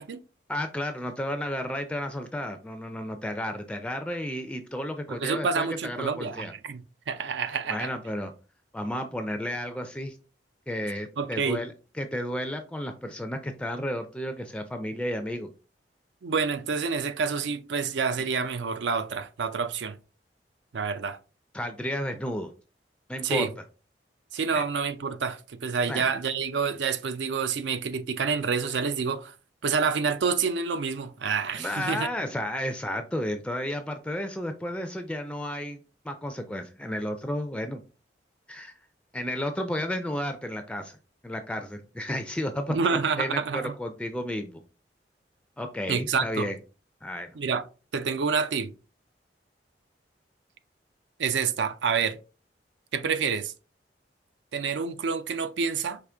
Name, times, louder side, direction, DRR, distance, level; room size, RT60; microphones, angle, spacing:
voice 1, 0.5-6.5 7.5-8.3 8.7-10.2 10.7-15.5 21.5-22.5 23.1-23.5 24.5-24.6 25.9-26.1 31.5-37.8 38.5-38.7 39.1-40.9 41.2-44.6 45.6-46.6 47.0-47.3, left 1 dB, 5° left, 0.3 m, -32 dB
voice 2, 5.1-7.9 11.2-11.6 16.2-20.0 20.7-21.2 23.2-23.5 24.3-29.3 29.6-32.1 42.7-43.7 45.9-46.5 47.4-47.7 47.9-48.7 51.2-52.2 52.9-53.5 54.5-56.0, right 5 dB, 80° right, 0.5 m, -28 dB
5.0 x 2.8 x 3.4 m
head